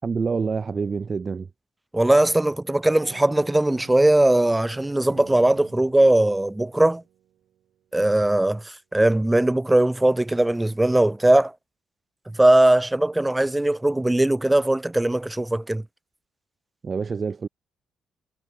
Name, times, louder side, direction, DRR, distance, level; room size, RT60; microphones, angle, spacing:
voice 1, 0.0-1.5 16.8-17.5, right 5 dB, 35° right, 5.2 m, -27 dB
voice 2, 1.9-7.0 7.9-11.5 12.3-15.8, right 1 dB, 10° right, 0.6 m, -20 dB
sound 1, 3.0-7.6, right 11 dB, 75° right, 5.5 m, -49 dB
cardioid pair, 90°, 0 cm